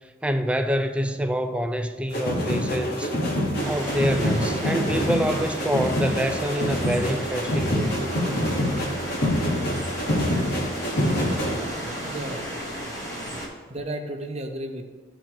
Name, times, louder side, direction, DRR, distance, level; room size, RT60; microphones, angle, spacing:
voice 1, 0.2-3.1 3.7-7.9, equal, 5° right, 0.4 m, -26 dB
sound 1, 2.1-11.6, equal, 60° left, 1.5 m, -26 dB
sound 2, 3.6-13.5, equal, 20° left, 1.4 m, -34 dB
voice 2, 12.0-12.6 13.7-14.8, right 1 dB, 35° right, 0.8 m, -33 dB
13.5 x 4.5 x 3.0 m
head